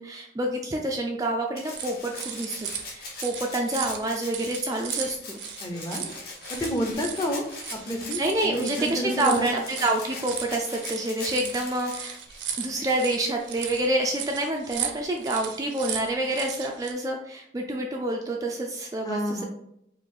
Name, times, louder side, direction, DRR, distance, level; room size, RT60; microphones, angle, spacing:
voice 1, 0.0-5.4 8.2-12.2 12.6-19.4, right 1 dB, 20° right, 1 dB, 0.3 m, -28 dB
Rattle (instrument), 1.6-13.9 15.3-15.4, left 3 dB, 55° left, 0.9 m, -41 dB
sound 1, 1.7-16.9, right 8 dB, 70° right, 0.5 m, -37 dB
voice 2, 5.6-6.1 6.5-7.4 7.9-9.5 19.0-19.4, equal, 20° left, 2 dB, 0.7 m, -29 dB
4.6 x 2.5 x 3.7 m, 0.75 s
head